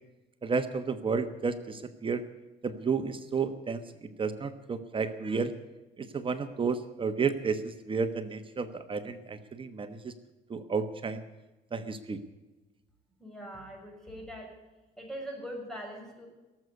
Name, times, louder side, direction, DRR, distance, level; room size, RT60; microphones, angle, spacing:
voice 1, 0.4-2.2 2.6-5.5 6.0-10.1 10.5-11.2 11.7-12.2, right 5 dB, 30° right, 9 dB, 1.2 m, -32 dB
voice 2, 13.2-14.5 15.0-16.3, equal, 5° left, 1 dB, 6.4 m, -41 dB
18.0 x 8.0 x 9.7 m, 1.1 s
cardioid pair, 110°, 17 cm